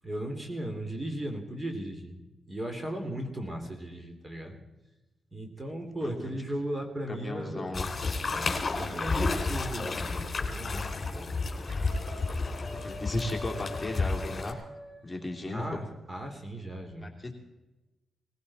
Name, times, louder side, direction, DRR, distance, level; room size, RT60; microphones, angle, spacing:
voice 1, 0.0-2.2 2.5-4.6 5.3-7.7 8.2-11.3 15.5-17.1, right 1 dB, 25° right, 4 dB, 3.1 m, -37 dB
voice 2, 6.0-6.3 7.1-7.9 12.7-14.6 15.0-15.8 17.0-17.3, left 2 dB, 20° left, 0 dB, 2.9 m, -35 dB
sound 1, 7.7-14.5, left 3 dB, 40° left, 3.4 m, -31 dB
sound 2, 10.5-10.8 11.1-11.4 11.7-15.7, left 1 dB, 85° right, 7.3 m, -46 dB
20.0 x 16.0 x 4.3 m, 1.1 s
cardioid pair, 70°, 0 cm